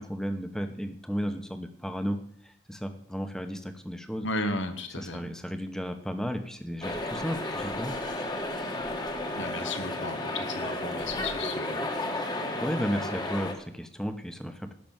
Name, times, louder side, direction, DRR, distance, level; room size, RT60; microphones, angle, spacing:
voice 1, 0.0-4.3 5.0-7.9 12.6-14.7, equal, 5° left, 7 dB, 0.9 m, -34 dB
voice 2, 4.2-5.2 9.4-11.8, left 2 dB, 80° left, 8 dB, 1.5 m, -34 dB
sound 1, 6.8-13.5, left 1 dB, 20° left, 1.3 m, -33 dB
12.0 x 6.0 x 8.9 m, 0.64 s
head